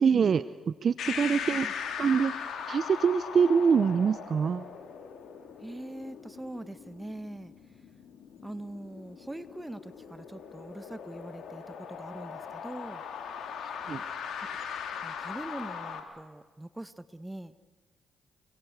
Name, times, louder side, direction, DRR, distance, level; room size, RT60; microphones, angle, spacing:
voice 1, 0.0-1.7 2.0-2.3 2.7-4.7 13.9-14.0, right 6 dB, 55° right, 15 dB, 0.8 m, -25 dB
sound 1, 1.0-16.0, left 7 dB, 70° left, 4.0 m, -40 dB
voice 2, 5.6-7.5 8.4-13.0 14.4-14.6 15.0-17.5, right 1 dB, 15° right, 13 dB, 1.6 m, -42 dB
29.0 x 22.0 x 8.2 m, 1.4 s
supercardioid pair, 55°, 0 cm